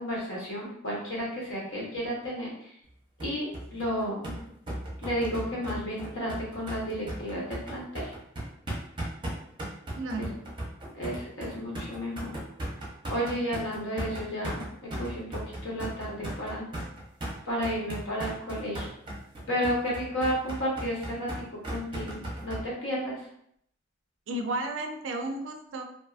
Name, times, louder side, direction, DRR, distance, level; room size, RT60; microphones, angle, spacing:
voice 1, 0.0-2.5 3.2-4.3 5.0-8.1 10.2-10.3 10.9-12.4 13.1-15.3 15.6-16.6 17.4-18.9 19.5-21.4 21.7-23.2, equal, 75° left, -4 dB, 1.0 m, -32 dB
sound 1, 3.2-22.6, right 1 dB, 25° right, 0.6 m, -37 dB
voice 2, 10.0-10.4 24.3-25.8, right 2 dB, 70° right, 5 dB, 0.3 m, -33 dB
2.6 x 2.3 x 2.4 m, 0.71 s
head